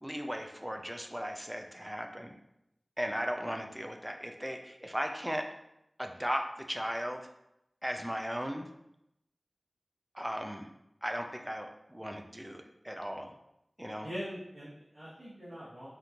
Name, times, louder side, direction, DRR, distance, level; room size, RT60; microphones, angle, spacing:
voice 1, 0.0-2.4 3.0-5.5 6.0-7.3 7.8-8.7 10.1-10.7 11.0-13.3 13.8-14.1, equal, 10° right, 4 dB, 0.4 m, -37 dB
voice 2, 14.0-15.9, equal, 70° right, -13 dB, 1.5 m, -42 dB
5.0 x 2.6 x 2.9 m, 0.84 s
wide cardioid pair, 60°, 0 cm